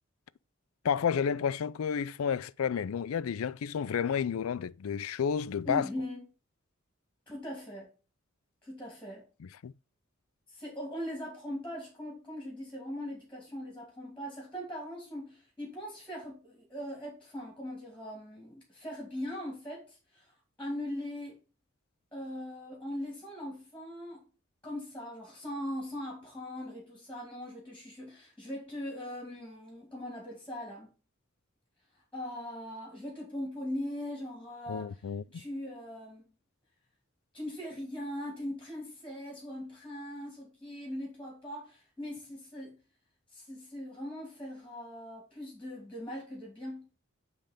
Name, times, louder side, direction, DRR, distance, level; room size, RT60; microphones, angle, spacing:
voice 1, 0.8-5.9 9.4-9.7 34.7-35.4, left 7 dB, 90° left, 0.4 m, -31 dB
voice 2, 5.6-6.2 7.3-7.9 8.6-9.3 10.5-20.3 20.6-21.4 22.1-24.2 24.6-30.9 32.1-35.0 35.3-36.2 37.3-42.8 43.3-47.0, left 1 dB, 5° left, 2.4 m, -40 dB
9.1 x 3.4 x 5.1 m
head